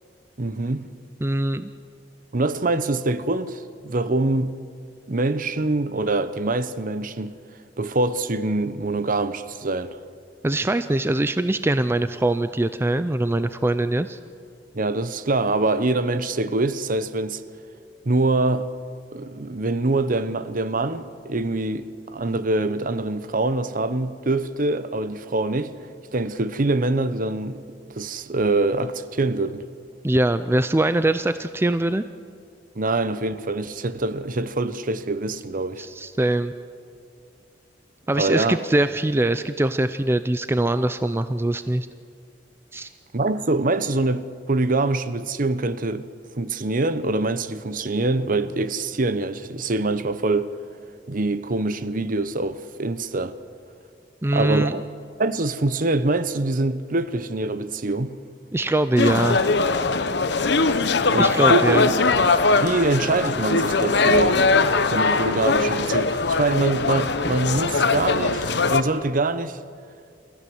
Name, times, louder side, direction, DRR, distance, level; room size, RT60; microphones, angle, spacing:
voice 1, 0.4-0.9 2.3-4.5 5.1-7.4 7.8-10.0 14.7-17.4 18.0-18.7 19.1-25.7 26.1-29.6 32.8-35.8 38.1-38.6 43.1-46.1 46.4-50.5 51.1-53.3 54.3-54.8 55.2-58.1 61.1-61.8 62.6-64.5 64.8-69.6, right 2 dB, 50° right, 0.9 m, -24 dB
voice 2, 1.2-1.7 10.4-14.2 30.0-32.0 35.8-36.5 38.1-41.9 42.7-42.9 54.2-54.7 58.5-59.4 61.2-61.9, right 1 dB, 15° right, 0.4 m, -22 dB
sound 1, 59.0-68.8, left 3 dB, 65° left, 1.0 m, -21 dB
23.0 x 15.0 x 9.5 m
head